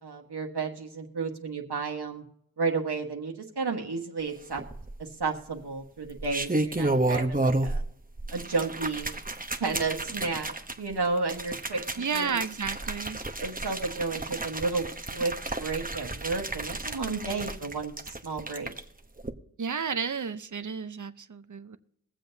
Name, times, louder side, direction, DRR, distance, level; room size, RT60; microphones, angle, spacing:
voice 1, 0.0-2.2 2.6-4.6 5.0-7.8 8.3-9.1 9.6-12.4 13.4-15.3 15.6-18.7, right 4 dB, 90° right, 1 dB, 1.4 m, -32 dB
sound 1, 4.6-5.2 6.0-7.9 8.2-18.8 19.2-19.3, right 2 dB, 20° right, 0.9 m, -32 dB
voice 2, 12.0-13.2 19.6-21.8, right 6 dB, 50° right, 12 dB, 0.7 m, -32 dB
22.5 x 7.6 x 2.7 m, 0.76 s
wide cardioid pair, 50°, 39 cm